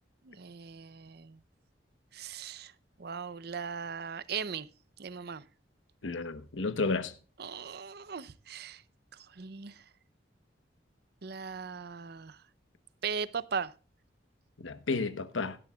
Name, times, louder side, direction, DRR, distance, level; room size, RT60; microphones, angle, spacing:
voice 1, 0.2-1.4 2.1-2.7 3.0-4.7 5.0-5.4 7.4-8.8 9.1-9.8 11.2-12.4 13.0-13.7, right 6 dB, 55° right, 0.6 m, -38 dB
voice 2, 6.0-7.1 14.6-15.6, left 3 dB, 85° left, 1.0 m, -32 dB
17.0 x 12.0 x 2.3 m
head